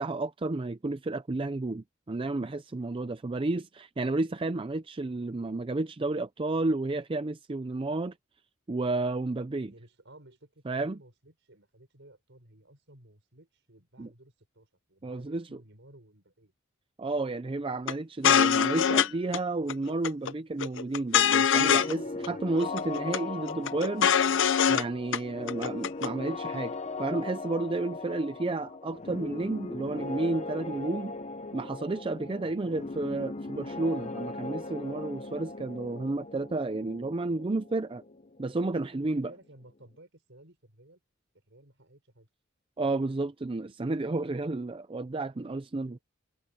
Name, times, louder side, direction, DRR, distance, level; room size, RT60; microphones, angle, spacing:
voice 1, 0.0-8.1 8.7-9.7 10.7-11.0 14.0-14.1 15.0-15.5 17.0-24.1 24.7-31.1 31.5-38.0 38.4-39.3 42.8-46.0, right 2 dB, 25° right, 0.5 m, -31 dB
voice 2, 9.6-16.5 22.2-22.4 32.4-32.8 37.4-37.5 39.0-41.0 41.5-42.3, right 1 dB, 60° right, 6.5 m, -56 dB
sound 1, 17.9-18.0 18.2-19.1 19.3-19.4 19.7-20.3 20.6-22.0 22.2-22.3 22.6-23.2 23.5-24.8 25.1-25.2 25.5-26.1, left 7 dB, 65° left, 0.6 m, -23 dB
sound 2, 21.6-39.2, left 3 dB, 35° left, 1.0 m, -39 dB
head